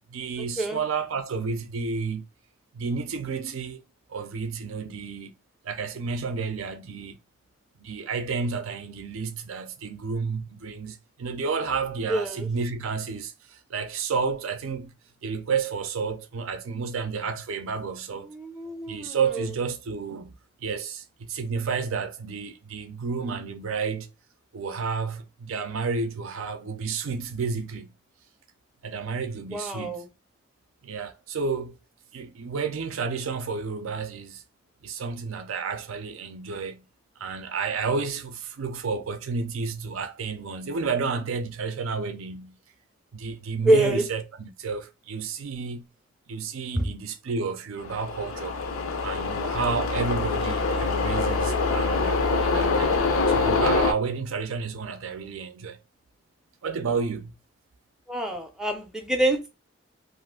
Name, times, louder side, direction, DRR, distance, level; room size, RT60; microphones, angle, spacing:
voice 1, 0.1-2.3 2.7-3.8 4.1-5.3 5.6-7.2 7.8-14.9 15.2-18.3 18.9-20.3 20.6-24.1 24.5-27.9 28.8-30.0 30.8-31.8 32.1-34.4 34.8-36.8 37.2-42.6 43.1-45.9 46.3-48.6 49.0-53.0 53.3-55.8 56.6-57.3, right 5 dB, 80° right, 0.4 m, -31 dB
voice 2, 12.1-12.5 18.2-19.5 29.5-30.1 43.6-44.1 46.8-46.9 58.1-59.5, right 1 dB, 5° right, 0.4 m, -26 dB
sound 1, 47.8-53.9, left 3 dB, 85° left, 0.5 m, -25 dB
2.5 x 2.4 x 3.6 m
head